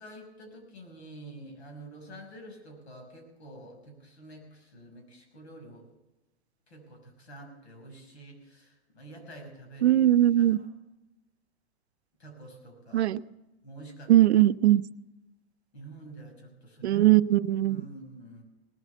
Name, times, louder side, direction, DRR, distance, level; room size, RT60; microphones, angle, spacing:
voice 1, 0.0-5.8 6.7-10.0 10.4-10.7 12.2-13.1 13.6-14.1 15.7-17.0 17.6-18.4, right 1 dB, 85° left, 2 dB, 5.9 m, -48 dB
voice 2, 9.8-10.6 12.9-13.2 14.1-14.8 16.8-17.8, right 13 dB, 85° right, 15 dB, 0.6 m, -20 dB
19.0 x 8.2 x 6.8 m, 1.0 s
hypercardioid pair, 130°, 32 cm